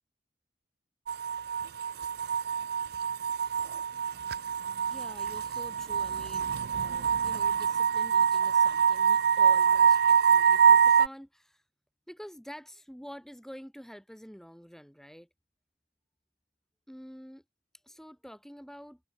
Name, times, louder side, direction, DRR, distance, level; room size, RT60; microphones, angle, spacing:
sound 1, 1.1-11.1, right 7 dB, 60° right, 0.4 m, -25 dB
voice 1, 4.9-11.6 12.1-15.3 16.9-17.4 17.8-19.0, equal, ahead, 7.7 m, -48 dB
head